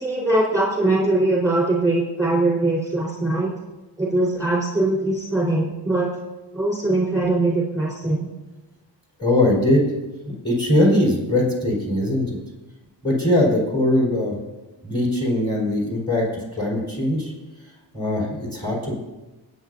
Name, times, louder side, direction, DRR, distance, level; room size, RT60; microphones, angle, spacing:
voice 1, 0.0-3.5 4.0-6.1 6.5-8.3, right 2 dB, 5° right, -5 dB, 4.2 m, -21 dB
voice 2, 9.2-9.8 10.4-12.4 13.0-14.3 14.8-16.3 16.5-17.3 17.9-18.9, left 1 dB, 10° left, -3 dB, 4.3 m, -20 dB
24.0 x 9.2 x 2.7 m, 1.1 s
wide cardioid pair, 110°, 46 cm